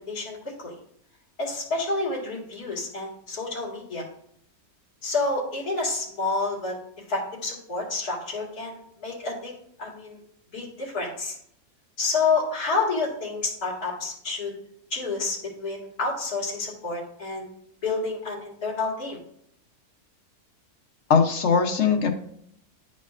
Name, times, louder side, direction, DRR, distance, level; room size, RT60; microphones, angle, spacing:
voice 1, 0.1-0.7 1.4-4.0 5.0-6.7 7.1-9.5 9.8-10.2 10.5-11.4 12.0-14.5 14.9-17.5 17.8-19.2, left 3 dB, 90° left, -5 dB, 2.4 m, -29 dB
voice 2, 21.1-22.1, left 6 dB, 55° left, 5 dB, 1.0 m, -20 dB
10.5 x 4.2 x 2.4 m, 0.68 s
omnidirectional pair, 1.6 m